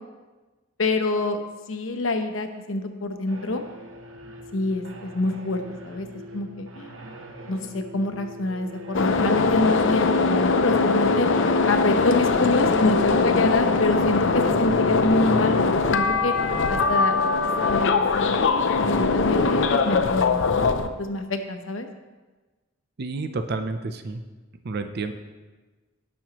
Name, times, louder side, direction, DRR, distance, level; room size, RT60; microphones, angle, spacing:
voice 1, 0.8-1.4 1.7-3.6 4.5-6.1 6.3-7.0 7.5-11.3 11.7-16.3 16.7-17.1 17.7-20.4 21.0-21.9, left 2 dB, 85° left, 6 dB, 0.9 m, -26 dB
sound 1, 3.3-17.2, right 1 dB, 75° right, 0.9 m, -43 dB
sound 2, 8.9-20.9, left 4 dB, 70° left, 0.6 m, -21 dB
voice 2, 23.0-24.2 24.6-25.1, right 3 dB, 55° right, 8 dB, 0.5 m, -30 dB
16.5 x 6.2 x 3.0 m, 1.2 s
head